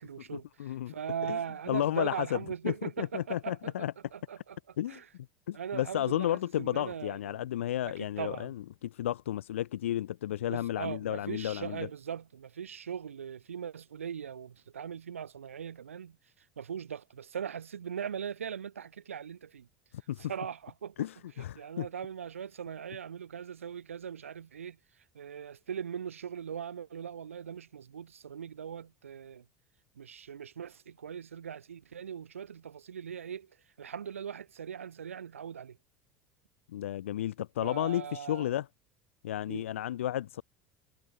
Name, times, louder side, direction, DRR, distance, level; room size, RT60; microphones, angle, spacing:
voice 1, 0.0-5.1 5.5-7.5 7.8-8.5 10.5-16.2 16.6-19.7 20.2-21.1 21.6-24.8 25.1-29.4 30.0-33.5 33.8-35.8 37.6-38.6 39.5-39.7, right 8 dB, 80° right, 0.8 m, -40 dB
voice 2, 0.6-0.9 1.3-1.4 1.7-2.4 2.6-3.9 4.8-5.0 5.5-8.6 8.8-11.9 20.1-20.3 21.0-21.9 36.7-38.7 39.2-40.4, left 12 dB, 75° left, 0.9 m, -32 dB
figure-of-eight pair, 70°, 7 cm